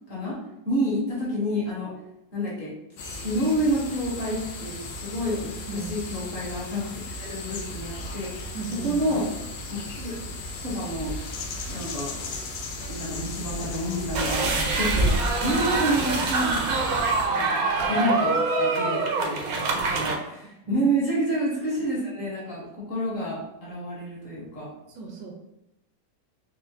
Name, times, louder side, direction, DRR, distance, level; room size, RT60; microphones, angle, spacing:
voice 1, 0.6-1.9 2.3-2.7 3.0-5.5 5.9-6.9 7.2-9.3 9.7-11.2 11.7-12.1 12.9-16.9 17.2-17.5 17.9-19.7 19.9-24.7, equal, 50° left, -6 dB, 1.5 m, -29 dB
sound 1, 3.0-17.3, left 1 dB, 75° left, 0.7 m, -36 dB
voice 2, 8.5-9.2 15.4-15.6 20.7-20.8 24.9-25.3, right 6 dB, 85° right, 1 dB, 1.4 m, -36 dB
sound 2, 14.1-20.1, right 3 dB, 70° right, 0.9 m, -24 dB
4.2 x 2.1 x 2.7 m, 0.91 s
omnidirectional pair, 1.9 m